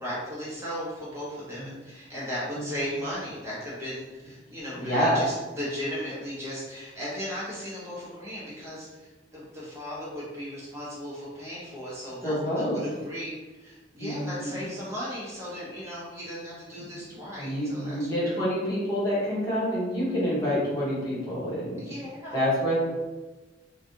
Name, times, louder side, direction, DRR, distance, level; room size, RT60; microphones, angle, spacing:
voice 1, 0.0-18.4 21.8-22.3, equal, 15° right, -8 dB, 1.1 m, -36 dB
voice 2, 4.8-5.2 12.2-12.8 14.0-14.7 16.8-16.9 17.4-21.8 22.3-22.8, equal, 20° left, -9 dB, 1.2 m, -27 dB
3.2 x 2.4 x 2.7 m, 1.2 s
head